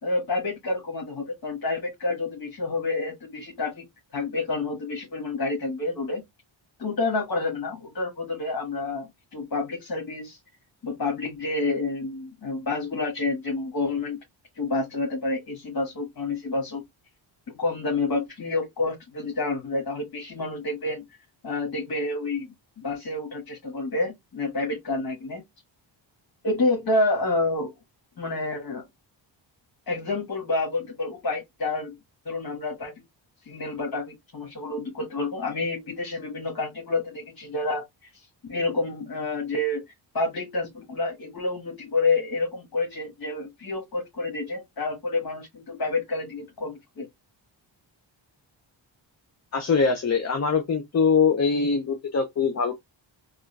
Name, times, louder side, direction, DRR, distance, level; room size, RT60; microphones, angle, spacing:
voice 1, 0.0-3.8 4.1-6.2 6.8-10.4 10.8-14.2 14.5-16.8 17.5-21.0 21.4-25.4 26.4-27.7 28.2-28.9 29.9-31.9 32.2-32.9 33.4-39.8 40.1-47.1, left 3 dB, 50° left, 1.6 m, -29 dB
voice 2, 49.5-52.7, left 5 dB, 35° left, 0.8 m, -23 dB
3.7 x 2.4 x 3.3 m
cardioid pair, 95°, 47 cm